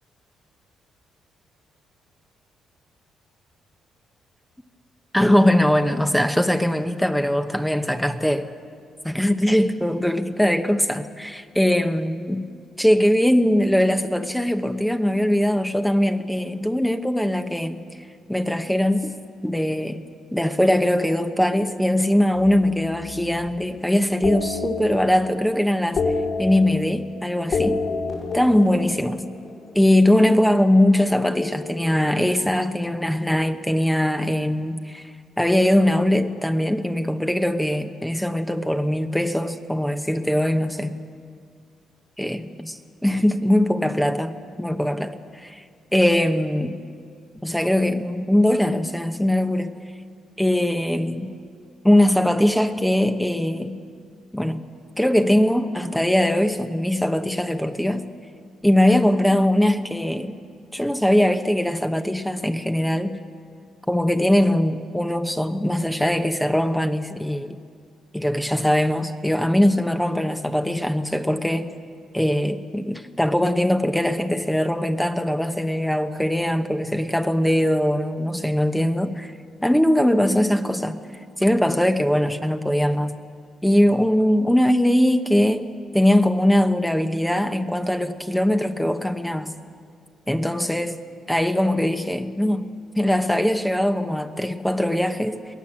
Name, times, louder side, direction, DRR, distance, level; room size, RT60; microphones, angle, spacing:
voice 1, 5.1-8.5 9.0-12.5 12.8-17.8 18.3-19.1 19.4-20.0 20.3-26.0 26.4-27.9 28.3-29.3 29.7-35.1 35.4-41.0 42.2-45.6 45.9-46.8 47.4-49.7 50.4-51.3 51.8-53.8 54.3-54.6 55.0-58.1 58.6-60.4 60.7-63.2 63.9-67.6 68.1-71.7 72.1-79.3 79.6-81.0 81.4-83.1 83.6-89.5 90.3-91.0 91.3-92.7 93.0-95.5, left 1 dB, 5° left, 0.9 m, -21 dB
sound 1, 22.3-23.6 24.2-25.4 25.7-27.1 27.4-29.7 30.9-32.7, left 4 dB, 55° left, 5.7 m, -29 dB
23.0 x 17.0 x 7.6 m
cardioid pair, 90°, 0 cm